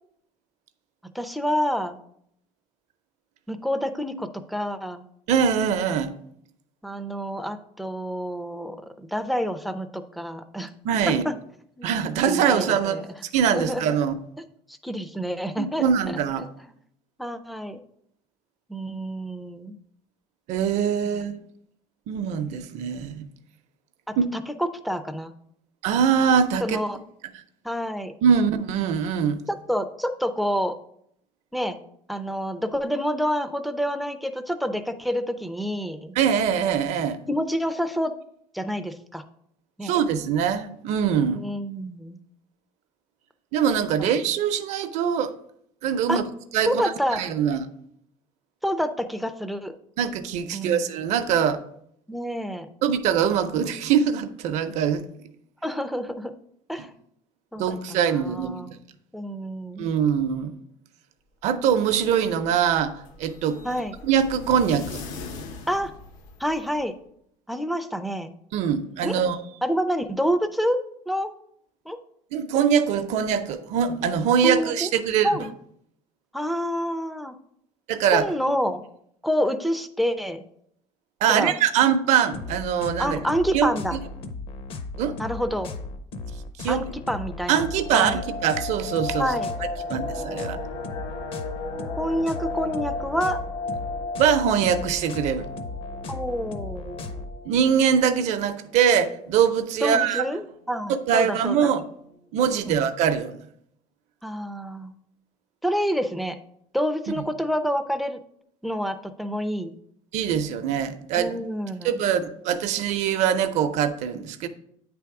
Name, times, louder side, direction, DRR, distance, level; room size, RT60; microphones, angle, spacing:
voice 1, 1.1-2.0 3.5-5.1 6.8-10.7 11.1-11.3 11.8-11.9 12.3-13.0 13.5-13.8 14.7-15.8 16.4-16.5 17.2-17.8 18.7-19.8 21.1-21.2 24.1-25.3 26.6-27.0 27.6-28.1 29.5-30.8 31.5-31.8 32.1-36.2 37.3-38.1 38.5-39.2 39.8-39.9 41.2-42.2 44.0-44.2 46.1-46.2 46.7-47.3 48.6-49.7 50.5-50.9 52.1-52.7 55.6-56.3 56.7-56.9 57.5-58.7 59.1-59.9 63.6-63.9 65.7-65.9 66.4-66.9 67.5-68.3 69.0-69.2 69.6-70.8 71.1-71.3 71.9-72.0 74.4-74.9 75.2-75.5 76.3-77.4 78.1-78.8 79.2-80.4 81.3-81.5 83.0-84.0 85.2-85.7 86.7-87.7 87.9-88.2 89.2-89.6 92.0-93.4 96.1-97.1 99.8-101.7 102.7-102.8 104.2-104.9 105.6-106.4 106.7-108.2 108.6-109.7 111.1-112.0, equal, ahead, 0.3 m, -28 dB
voice 2, 5.3-6.1 10.8-11.2 11.8-13.0 13.3-14.1 15.6-16.5 20.5-21.3 22.1-23.3 24.2-24.3 25.8-26.8 28.2-29.4 36.2-37.2 39.8-41.4 43.5-45.3 45.8-46.2 46.5-47.7 50.0-51.6 52.8-55.0 56.8-56.9 57.6-58.6 59.8-60.5 61.4-63.6 64.0-65.0 68.5-69.4 72.3-75.3 77.9-78.2 81.2-83.2 83.5-84.0 85.0-85.2 86.6-86.9 87.5-89.3 89.9-90.6 94.2-95.5 97.4-100.2 100.9-101.8 102.3-103.4 107.2-107.3 110.1-111.3 111.8-114.5, right 8 dB, 60° right, 0.6 m, -23 dB
sound 1, 61.8-66.8, left 4 dB, 85° left, 0.9 m, -41 dB
sound 2, 82.3-97.3, left 3 dB, 45° left, 0.6 m, -36 dB
sound 3, 87.6-98.4 98.7-98.8 99.1-99.3 99.7-100.2 100.7-100.8 101.0-101.5 101.8-101.9, left 3 dB, 60° left, 1.0 m, -35 dB
8.9 x 3.4 x 4.7 m
cardioid pair, 165°, 13 cm